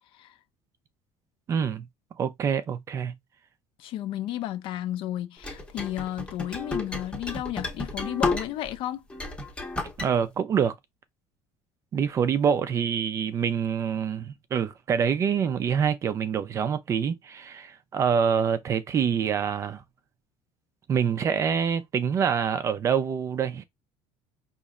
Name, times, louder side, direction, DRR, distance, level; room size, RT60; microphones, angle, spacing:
voice 1, 1.5-1.9 2.2-3.1 10.0-10.7 11.9-19.8 20.9-23.6, right 7 dB, 25° right, 0.4 m, -26 dB
voice 2, 3.8-9.0, left 13 dB, 50° left, 0.6 m, -33 dB
sound 1, 5.4-8.8 9.1-10.1, left 3 dB, 10° left, 0.8 m, -31 dB
5.2 x 2.9 x 2.4 m
cardioid pair, 180°, 12 cm